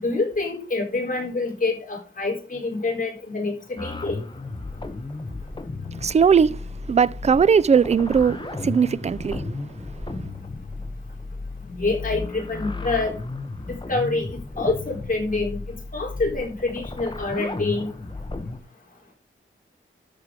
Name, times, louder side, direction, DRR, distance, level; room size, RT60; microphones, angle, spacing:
voice 1, 0.0-4.2 11.8-13.1 13.6-14.3 14.6-17.9, left 3 dB, 40° left, 4.1 m, -26 dB
sound 1, 3.8-18.6, left 3 dB, 20° left, 1.2 m, -34 dB
voice 2, 6.0-9.5, right 6 dB, 30° right, 0.4 m, -19 dB
13.0 x 4.7 x 5.0 m
wide cardioid pair, 125°, 21 cm